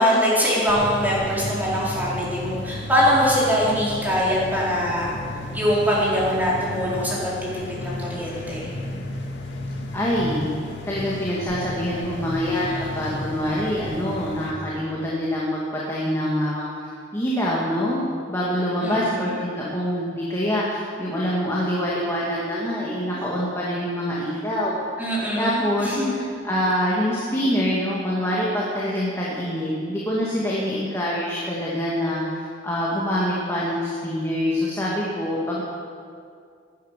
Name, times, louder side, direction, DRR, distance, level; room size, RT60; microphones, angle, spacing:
voice 1, 0.0-5.1 5.5-8.7 18.8-19.3 25.0-26.1, equal, 10° right, -6 dB, 4.4 m, -23 dB
sound 1, 0.7-14.5, left 1 dB, 85° left, 2.2 m, -33 dB
voice 2, 9.9-10.5 10.9-15.6 15.9-16.7 17.1-18.0 18.3-24.8 25.4-32.4 32.6-35.6, equal, 15° left, -6 dB, 2.2 m, -25 dB
17.0 x 11.0 x 6.8 m, 2.2 s
head